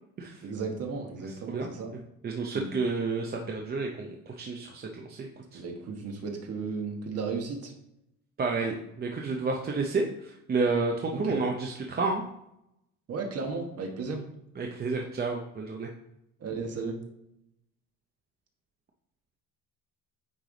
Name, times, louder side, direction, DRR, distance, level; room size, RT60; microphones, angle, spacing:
voice 1, 0.4-1.9 2.5-2.7 5.5-7.7 11.1-11.4 13.1-14.2 16.4-17.0, right 4 dB, 45° right, 3 dB, 1.3 m, -34 dB
voice 2, 2.2-5.6 8.4-12.2 14.6-15.9, right 3 dB, 30° right, 1 dB, 0.6 m, -30 dB
9.0 x 3.3 x 3.9 m, 0.81 s
cardioid pair, 125°, 35 cm